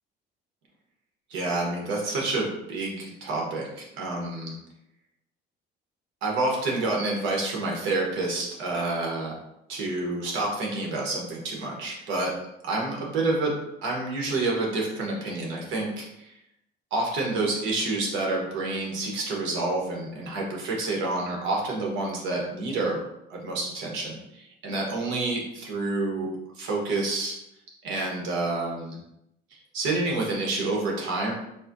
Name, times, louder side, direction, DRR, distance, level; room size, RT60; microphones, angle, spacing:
voice 1, 1.3-4.5 6.2-9.3 9.7-12.3 12.6-13.5 13.8-16.3 16.9-23.0 23.3-27.3 27.8-29.0 29.7-31.3, right 2 dB, 90° right, -1 dB, 1.1 m, -28 dB
4.1 x 2.6 x 2.6 m, 0.81 s
cardioid pair, 135°, 19 cm